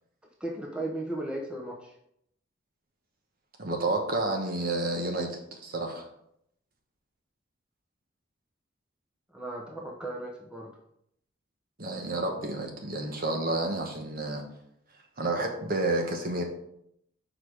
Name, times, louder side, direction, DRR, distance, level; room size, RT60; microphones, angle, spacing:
voice 1, 0.4-1.9 9.3-10.7, right 1 dB, 5° right, -1 dB, 0.9 m, -36 dB
voice 2, 3.6-6.1 11.8-14.4 15.2-16.4, right 2 dB, 45° right, 2 dB, 1.2 m, -30 dB
6.7 x 5.0 x 4.8 m, 0.75 s
head